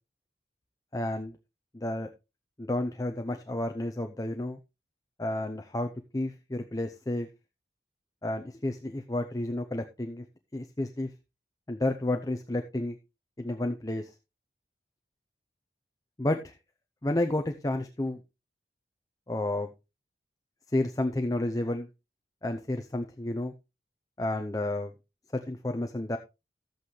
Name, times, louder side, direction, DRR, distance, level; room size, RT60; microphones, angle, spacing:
voice 1, 0.9-1.4 1.7-2.1 2.6-4.6 5.2-7.3 8.2-10.2 10.5-11.1 11.7-13.0 13.4-14.1 16.2-16.5 17.0-18.2 19.3-19.7 20.7-21.9 22.4-23.5 24.2-24.9 25.3-26.2, left 1 dB, 20° left, 5 dB, 0.6 m, -31 dB
13.5 x 8.1 x 3.2 m, 0.27 s
head